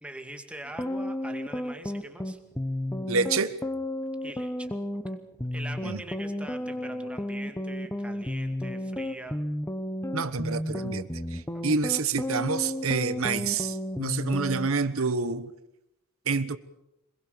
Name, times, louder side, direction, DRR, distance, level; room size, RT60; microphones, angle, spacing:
voice 1, 0.0-2.4 4.2-4.7 5.1-5.2 5.5-9.4 11.5-11.6, right 1 dB, 5° right, 2.3 m, -43 dB
sound 1, 0.7-14.7, left 1 dB, 10° left, 1.0 m, -32 dB
voice 2, 3.1-3.5 5.8-6.0 10.1-15.5 16.3-16.6, right 4 dB, 65° right, 1.2 m, -28 dB
26.0 x 21.5 x 7.0 m
head